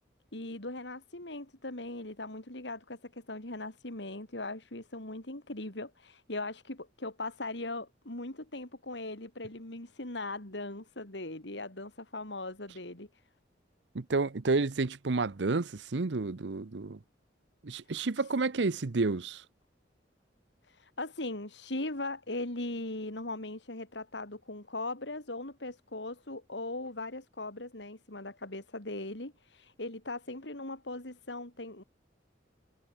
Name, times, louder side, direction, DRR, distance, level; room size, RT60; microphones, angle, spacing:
voice 1, 0.3-13.1 18.2-18.3 20.6-31.8, left 2 dB, 75° left, 3.6 m, -39 dB
voice 2, 13.9-17.0 17.6-19.4, right 3 dB, 75° right, 0.8 m, -30 dB
head